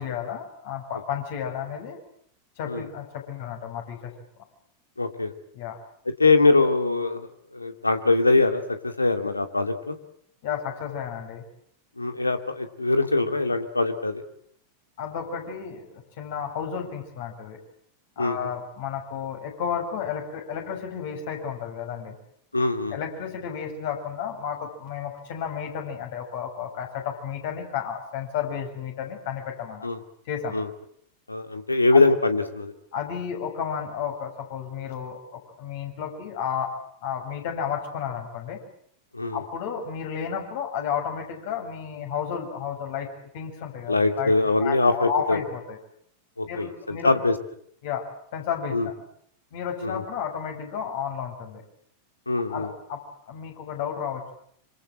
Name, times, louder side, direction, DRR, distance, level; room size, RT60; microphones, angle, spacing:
voice 1, 0.0-2.0 2.6-4.1 5.5-5.8 10.4-11.4 15.0-15.9 16.2-17.6 18.2-22.2 22.9-29.9 30.3-30.6 31.9-32.0 32.9-36.7 37.0-38.6 39.3-43.1 43.3-44.3 44.6-45.8 46.5-47.1 47.8-48.0 48.3-48.9 49.5-51.6 52.5-54.3, left 7 dB, 50° left, 3 dB, 7.2 m, -32 dB
voice 2, 5.0-5.3 6.2-10.0 12.0-14.2 18.2-18.4 22.5-23.0 29.8-30.0 30.5-30.7 31.3-32.7 39.1-39.4 43.9-45.4 46.4-47.3 48.7-48.9 49.8-49.9 52.3-52.7, left 3 dB, 80° left, 8 dB, 2.5 m, -22 dB
26.5 x 26.5 x 7.8 m, 0.68 s
figure-of-eight pair, 90°, 0 cm